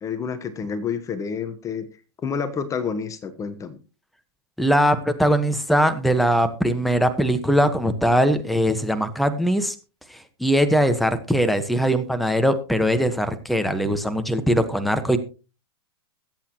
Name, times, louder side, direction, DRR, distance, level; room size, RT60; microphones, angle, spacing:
voice 1, 0.0-1.9 2.2-3.8, left 6 dB, 25° left, 11 dB, 1.2 m, -29 dB
voice 2, 4.6-9.7 10.1-15.2, equal, ahead, 9 dB, 1.3 m, -21 dB
22.0 x 8.4 x 3.0 m, 0.33 s
hypercardioid pair, 120°, 14 cm